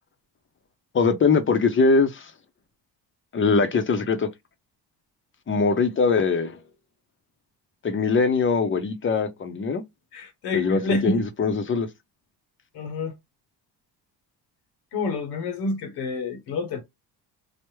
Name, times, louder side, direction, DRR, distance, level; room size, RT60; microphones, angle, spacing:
voice 1, 0.9-2.3 3.3-4.3 5.5-6.6 7.8-9.8 10.5-11.9, left 4 dB, 30° left, 0.6 m, -22 dB
voice 2, 10.1-11.2 12.7-13.1 14.9-16.8, left 3 dB, 80° left, 1.0 m, -28 dB
3.4 x 2.1 x 3.0 m
cardioid pair, 115°, 40 cm